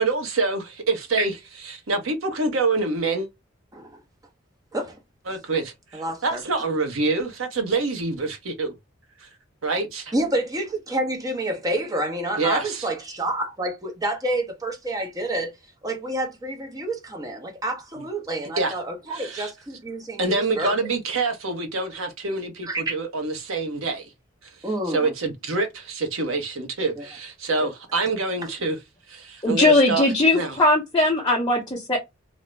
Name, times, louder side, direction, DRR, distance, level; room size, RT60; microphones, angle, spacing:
voice 1, 0.0-1.3 1.6-3.3 5.3-8.7 9.2-9.3 9.6-10.1 12.4-12.9 18.0-18.1 18.6-18.7 19.1-19.5 20.2-24.1 24.9-28.8 29.1-30.0 30.3-30.6, right 3 dB, 90° right, 0.8 m, -26 dB
voice 2, 5.9-6.4 10.1-15.5 15.8-20.8 22.6-22.9 24.6-25.1 27.0-27.1 27.6-27.7, right 1 dB, 20° right, 0.6 m, -28 dB
voice 3, 29.4-32.0, left 2 dB, 20° left, 0.6 m, -19 dB
2.5 x 2.0 x 3.1 m
head